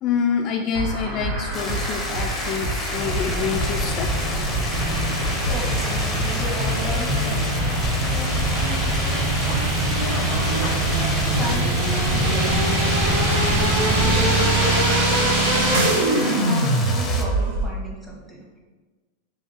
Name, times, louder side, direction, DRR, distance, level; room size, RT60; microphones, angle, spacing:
voice 1, 0.0-4.6, left 6 dB, 40° left, 2 dB, 0.3 m, -27 dB
sound 1, 0.7-17.6, right 1 dB, 70° right, 1.1 m, -23 dB
sound 2, 1.5-17.2, left 3 dB, 20° left, 0.7 m, -32 dB
sound 3, 2.9-14.1, equal, 20° right, 1.0 m, -27 dB
voice 2, 5.5-5.8 6.3-7.4 10.3-10.7 11.0-13.2 14.0-15.2 16.0-18.5, equal, ahead, -3 dB, 1.3 m, -34 dB
3.5 x 2.8 x 4.2 m, 1.3 s
hypercardioid pair, 120°, 0 cm